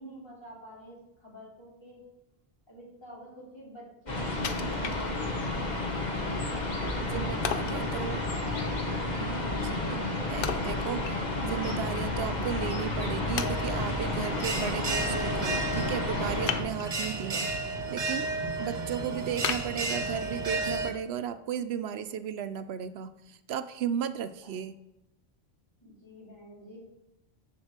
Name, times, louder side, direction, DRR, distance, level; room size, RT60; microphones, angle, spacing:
voice 1, 0.0-2.0 2.7-7.0 7.8-11.0 24.4-24.6 25.8-26.8, left 1 dB, 25° left, -5 dB, 3.3 m, -48 dB
sound 1, 4.1-16.6, left 2 dB, 45° left, 1.6 m, -31 dB
Wood, 4.4-5.6 6.0-6.1 7.4-7.9 10.4-11.5 11.9-12.0 12.7-12.8 13.4-14.0 16.4-17.2 17.7-18.1 18.5-18.6 19.4-20.5 20.9-21.0, left 7 dB, 65° left, 0.8 m, -35 dB
voice 2, 7.0-8.2 9.2-9.4 9.6-10.0 10.3-17.5 17.9-18.3 18.6-24.8, right 9 dB, 85° right, 12 dB, 0.9 m, -35 dB
Bell, 13.4-20.9, right 3 dB, 50° right, 1.2 m, -33 dB
10.5 x 4.6 x 7.2 m, 0.93 s
omnidirectional pair, 1.0 m